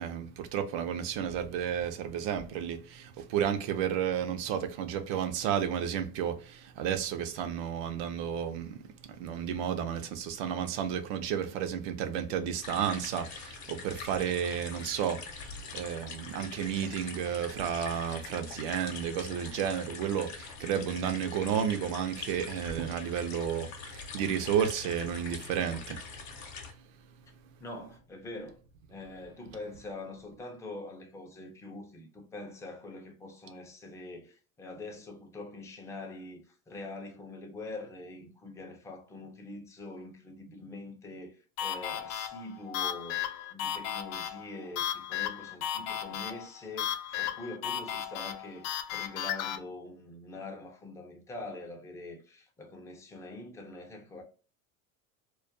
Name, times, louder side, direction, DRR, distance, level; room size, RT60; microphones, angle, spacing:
voice 1, 0.0-26.0, right 8 dB, 70° right, 0.6 m, -32 dB
sound 1, 12.6-26.7, left 5 dB, 40° left, 0.7 m, -44 dB
voice 2, 27.6-28.6 28.9-54.2, left 2 dB, 10° left, 0.4 m, -44 dB
sound 2, 41.6-49.6, left 10 dB, 80° left, 0.5 m, -35 dB
2.3 x 2.2 x 2.5 m
supercardioid pair, 115°, 41 cm